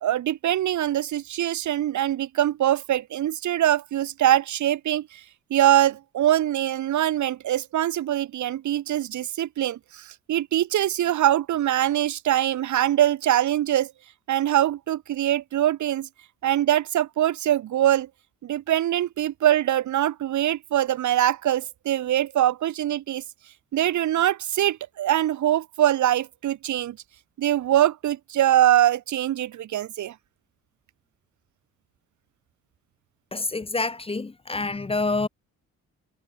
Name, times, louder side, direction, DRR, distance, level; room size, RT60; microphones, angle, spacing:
voice 1, 0.0-5.2 5.5-13.9 14.3-16.1 16.4-18.1 18.4-23.2 23.7-27.0 27.4-30.1, right 12 dB, 75° right, 3.0 m, -23 dB
voice 2, 33.3-35.3, left 3 dB, 20° left, 1.3 m, -27 dB
cardioid pair, 90°, 30 cm